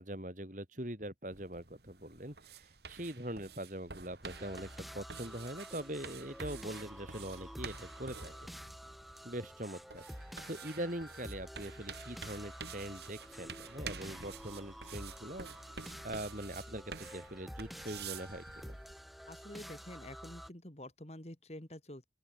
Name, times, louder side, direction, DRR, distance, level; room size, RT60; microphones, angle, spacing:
voice 1, 0.0-8.3 9.2-18.8, right 1 dB, 45° right, 7.0 m, -43 dB
sound 1, 1.3-18.9, right 5 dB, 70° right, 2.5 m, -50 dB
sound 2, 4.2-20.5, equal, ahead, 4.9 m, -49 dB
voice 2, 19.3-22.1, left 1 dB, 35° left, 2.7 m, -48 dB
open air
head